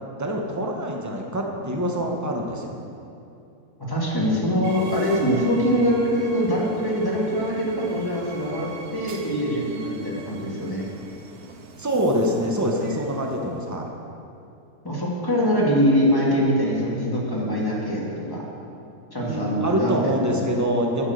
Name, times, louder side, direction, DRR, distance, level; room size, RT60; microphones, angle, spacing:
voice 1, 0.2-2.7 11.8-13.9 19.2-21.1, equal, 15° right, 0 dB, 0.8 m, -25 dB
voice 2, 3.9-10.8 14.8-18.4 19.1-20.4, equal, 15° left, -4 dB, 1.8 m, -23 dB
Train, 4.6-13.8, right 4 dB, 80° right, 1.3 m, -41 dB
9.0 x 7.2 x 6.5 m, 2.6 s
omnidirectional pair, 1.6 m